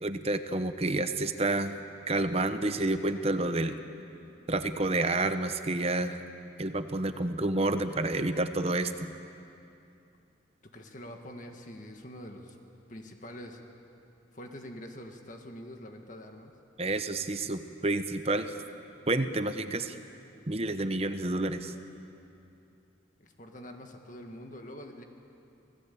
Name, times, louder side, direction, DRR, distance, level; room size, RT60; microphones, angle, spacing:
voice 1, 0.0-1.7 2.1-3.8 4.5-6.2 6.6-9.1 16.8-18.5 19.1-20.0 20.5-21.7, right 2 dB, 30° right, 9 dB, 0.9 m, -29 dB
voice 2, 10.7-12.6 12.9-13.6 14.3-16.5 23.2-25.0, equal, 40° left, 4 dB, 1.7 m, -45 dB
27.0 x 17.5 x 8.5 m, 2.7 s
head